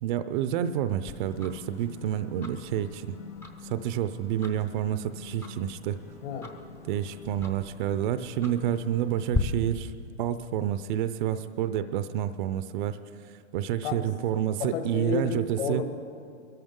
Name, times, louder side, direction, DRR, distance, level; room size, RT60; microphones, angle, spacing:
voice 1, 0.0-3.2 3.6-6.0 6.8-9.9 10.2-13.0 13.5-15.8, right 10 dB, 40° right, 12 dB, 0.5 m, -29 dB
Tick-tock, 1.1-9.4, left 2 dB, 10° left, 0.6 m, -40 dB
sound 1, 1.2-9.4, left 5 dB, 80° left, 1.8 m, -48 dB
voice 2, 6.2-6.6 13.8-14.1 14.6-15.8, left 6 dB, 50° left, 6 dB, 1.8 m, -31 dB
22.5 x 13.5 x 3.7 m, 2.5 s
hypercardioid pair, 135°, 37 cm